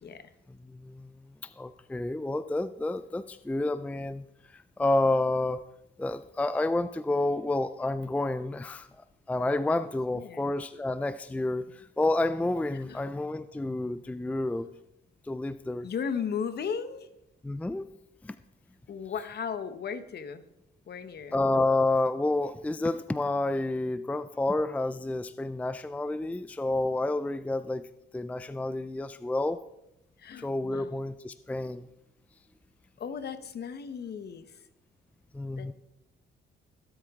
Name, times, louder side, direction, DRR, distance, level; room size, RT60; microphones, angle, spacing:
voice 1, 0.7-1.1 1.4-4.3 4.5-5.6 6.0-8.9 9.3-14.7 15.2-15.9 17.4-17.9 18.2-18.4 21.3-27.9 28.1-29.6 30.4-31.9 35.3-35.7, left 2 dB, 5° left, 14 dB, 0.4 m, -29 dB
voice 2, 10.1-10.4 12.7-13.0 15.8-17.1 18.9-20.4 20.9-21.3 30.2-30.9 33.0-34.5 35.6-35.7, left 6 dB, 55° left, 11 dB, 1.1 m, -36 dB
22.0 x 8.3 x 3.7 m, 0.85 s
cardioid pair, 90°, 20 cm